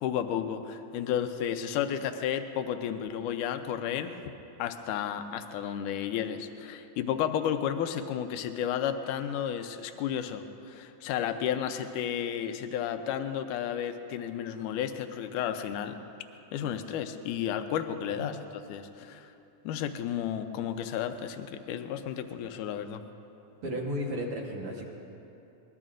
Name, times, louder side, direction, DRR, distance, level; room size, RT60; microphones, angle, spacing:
voice 1, 0.0-4.1 4.6-16.0 16.5-18.4 18.7-19.3 19.6-23.0, left 9 dB, 85° left, 8 dB, 2.2 m, -32 dB
voice 2, 23.6-24.8, equal, 55° right, -2 dB, 1.8 m, -34 dB
23.0 x 20.5 x 2.5 m, 2.8 s
omnidirectional pair, 3.6 m